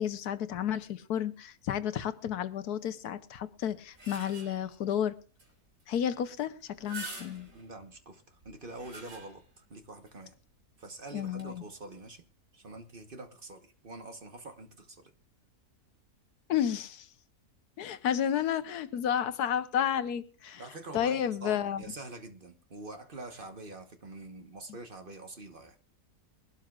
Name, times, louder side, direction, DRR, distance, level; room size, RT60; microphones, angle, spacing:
voice 1, 0.0-5.1 5.9-7.5 11.1-11.6 16.5-17.1 17.8-20.6 20.9-21.8, left 9 dB, 85° left, 1.4 m, -31 dB
sound 1, 3.6-4.8 5.4-5.5 5.8-5.9 6.6-7.7 8.4-9.6 10.1-10.2 11.2-11.4, right 3 dB, 55° right, 3.7 m, -46 dB
voice 2, 7.5-10.3 10.8-12.2 12.5-15.1 20.6-25.8, right 2 dB, 40° right, 1.2 m, -45 dB
22.0 x 12.5 x 2.4 m
omnidirectional pair, 1.6 m